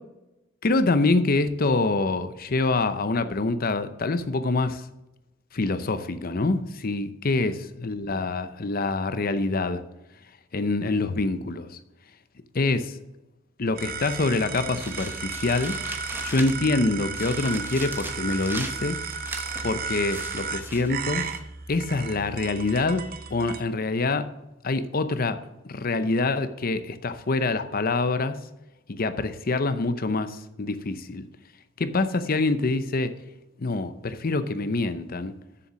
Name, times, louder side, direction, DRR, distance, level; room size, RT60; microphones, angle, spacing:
voice 1, 0.6-4.8 5.5-9.8 10.5-11.8 12.5-13.0 13.6-15.8 16.2-19.0 19.6-21.3 21.7-23.0 23.3-24.3 24.6-28.4 28.9-31.2 31.8-33.1 33.6-35.3, left 3 dB, 50° left, 0.7 m, -25 dB
sound 1, 13.7-23.6, right 5 dB, 50° right, 0.7 m, -34 dB
sound 2, 14.5-16.8 17.1-21.4, right 2 dB, 10° right, 1.0 m, -39 dB
7.0 x 7.0 x 6.2 m
head